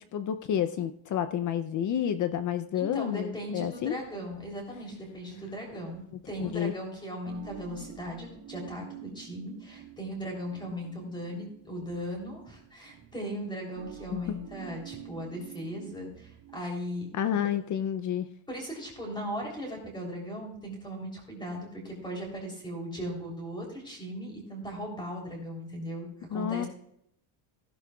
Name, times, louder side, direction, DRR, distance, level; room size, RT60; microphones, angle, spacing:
voice 1, 0.1-4.0 6.4-6.7 14.1-14.3 17.1-18.3 26.3-26.7, left 9 dB, 40° left, 11 dB, 0.5 m, -30 dB
voice 2, 2.7-17.1 17.3-17.4 18.5-26.7, equal, 10° left, 0 dB, 3.2 m, -38 dB
sound 1, 3.7-16.6, right 10 dB, 50° right, 1.7 m, -49 dB
15.5 x 11.0 x 2.3 m, 0.71 s
cardioid pair, 175°, 49 cm